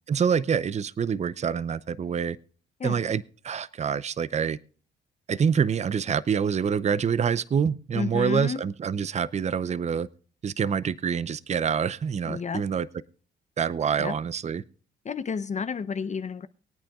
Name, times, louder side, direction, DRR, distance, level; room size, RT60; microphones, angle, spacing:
voice 1, 0.1-2.4 2.8-4.6 5.3-10.1 10.4-12.9 13.6-14.6, right 7 dB, 35° right, 0.6 m, -26 dB
voice 2, 7.9-8.6 12.3-12.6 14.0-14.1 15.0-16.5, left 5 dB, 35° left, 0.7 m, -31 dB
24.0 x 8.9 x 2.4 m
cardioid pair, 90°, 20 cm